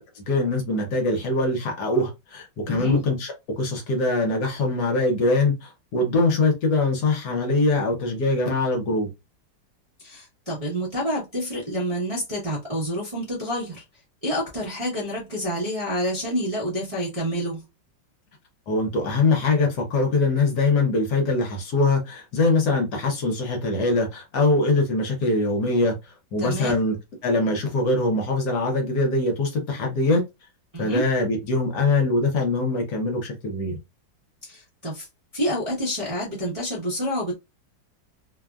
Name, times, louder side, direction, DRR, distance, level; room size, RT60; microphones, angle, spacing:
voice 1, 0.3-9.1 18.7-25.9 26.3-27.0 27.2-30.2 30.8-33.8, left 2 dB, 65° left, 1.3 m, -23 dB
voice 2, 2.7-3.0 10.0-13.8 14.2-17.6 26.4-26.8 30.7-31.0 34.4-35.1 35.3-37.3, equal, 30° right, 0.7 m, -28 dB
3.3 x 2.1 x 2.3 m
omnidirectional pair, 2.1 m